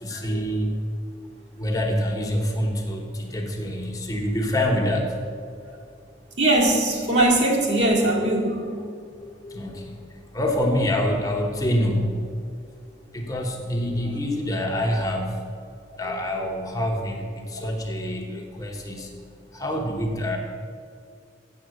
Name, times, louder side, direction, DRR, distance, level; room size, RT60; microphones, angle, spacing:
voice 1, 0.0-0.8 1.6-5.1 9.2-10.1 10.3-12.2 13.1-15.4 16.0-19.2 19.5-20.4, left 1 dB, 20° left, 1 dB, 0.9 m, -26 dB
voice 2, 6.4-8.7, right 1 dB, 70° right, -3 dB, 2.1 m, -21 dB
7.6 x 6.7 x 7.9 m, 2.2 s
head